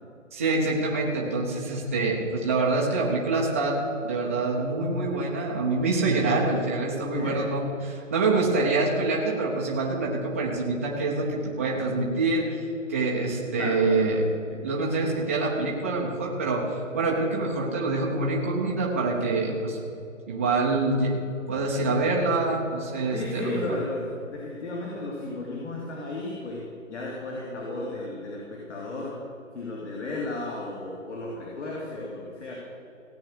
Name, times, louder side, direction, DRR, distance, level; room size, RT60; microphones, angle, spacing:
voice 1, 0.3-14.2 14.5-19.8 20.3-23.6, right 3 dB, 10° right, -3 dB, 0.7 m, -26 dB
voice 2, 13.5-14.1 23.1-26.6 26.9-29.2 29.5-32.5, left 2 dB, 60° left, -3 dB, 2.9 m, -34 dB
16.5 x 8.9 x 6.6 m, 2.6 s
hypercardioid pair, 165°, 40 cm